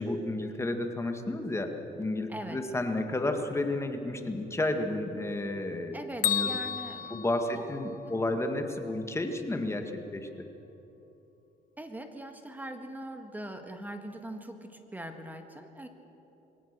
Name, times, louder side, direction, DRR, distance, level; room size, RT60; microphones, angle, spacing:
voice 1, 0.0-6.0 6.2-6.6 7.1-10.5, left 2 dB, 15° left, 5 dB, 1.8 m, -32 dB
voice 2, 2.3-2.6 5.9-7.2 7.5-7.6 8.1-8.2 11.8-15.9, right 1 dB, 10° right, 6 dB, 1.7 m, -41 dB
Bell, 6.2-8.3, left 9 dB, 55° left, 0.8 m, -32 dB
22.0 x 17.5 x 6.7 m, 3.0 s
cardioid pair, 110°, 17 cm